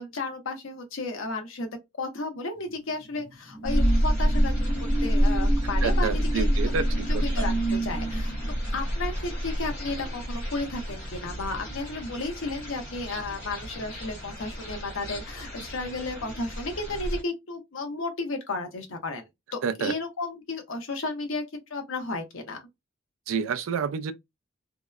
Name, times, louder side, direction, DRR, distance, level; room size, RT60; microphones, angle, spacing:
voice 1, 0.0-1.7 2.0-6.5 6.9-8.3 8.7-19.2 19.5-21.4 21.7-22.6, left 3 dB, 80° left, 0.8 m, -33 dB
sound 1, 2.6-11.6 12.0-12.2, right 3 dB, 25° left, 0.8 m, -35 dB
sound 2, 3.6-17.2, equal, 45° left, 1.4 m, -28 dB
voice 2, 5.8-7.5 19.6-19.9 23.3-24.1, right 6 dB, 85° right, 0.4 m, -29 dB
2.8 x 2.0 x 2.3 m
head